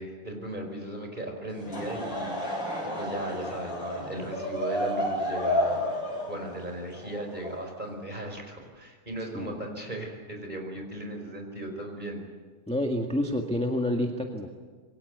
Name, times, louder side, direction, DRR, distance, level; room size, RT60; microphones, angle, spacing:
voice 1, 0.0-2.6 2.9-5.8 6.3-12.2, right 1 dB, 25° right, 3 dB, 5.1 m, -37 dB
Laughter / Crowd, 1.5-8.0, equal, 80° left, 8.6 m, -31 dB
voice 2, 12.7-14.5, left 1 dB, 5° left, 2 dB, 1.6 m, -28 dB
27.0 x 23.5 x 8.2 m, 1.5 s
omnidirectional pair, 2.0 m